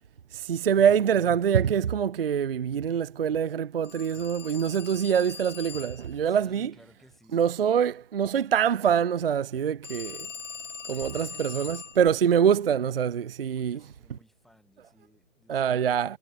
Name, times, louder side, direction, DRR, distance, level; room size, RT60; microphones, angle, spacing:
voice 1, 0.3-6.7 7.3-10.2 10.9-13.8 15.5-16.2, right 8 dB, 50° right, 0.5 m, -25 dB
Telephone, 3.8-6.2 9.8-12.0, left 6 dB, 65° left, 1.7 m, -41 dB
voice 2, 6.3-7.5 10.9-11.8 13.5-15.9, left 1 dB, ahead, 8.0 m, -57 dB
figure-of-eight pair, 145°, 39 cm